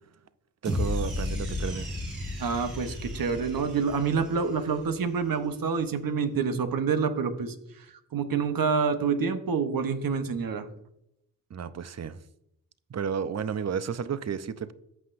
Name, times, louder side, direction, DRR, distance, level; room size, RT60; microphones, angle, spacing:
voice 1, 0.6-1.9 11.5-12.2 12.9-14.7, right 7 dB, 45° right, 0.7 m, -32 dB
sound 1, 0.6-5.0, left 2 dB, 85° right, 3.6 m, -34 dB
voice 2, 2.4-7.5 8.1-10.7, right 5 dB, 70° right, 1.0 m, -27 dB
14.0 x 5.7 x 2.6 m
supercardioid pair, 40°, 36 cm